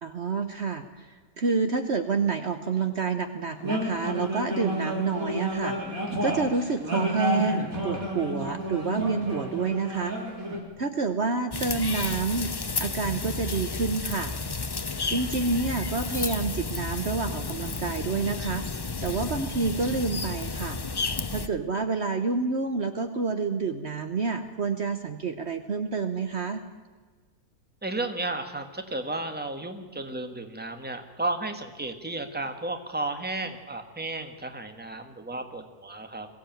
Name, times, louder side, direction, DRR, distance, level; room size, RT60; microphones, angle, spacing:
voice 1, 0.0-5.8 6.2-10.2 10.8-12.5 12.8-14.3 15.1-18.7 19.0-20.8 21.3-26.6, right 4 dB, 50° right, 8 dB, 1.3 m, -28 dB
sound 1, 3.6-10.6, equal, 65° right, 4.2 m, -31 dB
sound 2, 11.5-21.5, left 4 dB, 40° left, 0.3 m, -32 dB
voice 2, 27.8-36.3, right 2 dB, 5° right, 7 dB, 1.5 m, -33 dB
22.5 x 16.0 x 9.2 m, 1.4 s
omnidirectional pair, 1.6 m